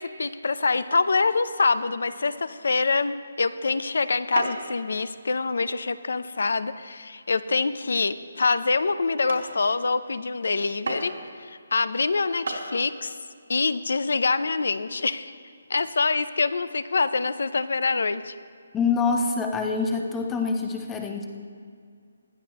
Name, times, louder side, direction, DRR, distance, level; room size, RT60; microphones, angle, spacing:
voice 1, 0.0-11.1 11.4-13.2 13.5-15.3 15.7-18.3, left 4 dB, 75° left, 14 dB, 0.6 m, -25 dB
sound 1, 3.1-3.4 4.3-4.7 5.1-5.5 6.1-6.2 6.8-7.0 7.7-7.8 8.3-8.4 8.9-9.0 9.3-9.5 10.9-11.3 12.1-12.2 12.5-12.7, right 3 dB, 75° right, 3.4 m, -33 dB
voice 2, 18.7-21.2, left 4 dB, 10° left, 3 dB, 0.9 m, -25 dB
19.5 x 12.5 x 3.0 m, 2.2 s
hypercardioid pair, 165°, 0 cm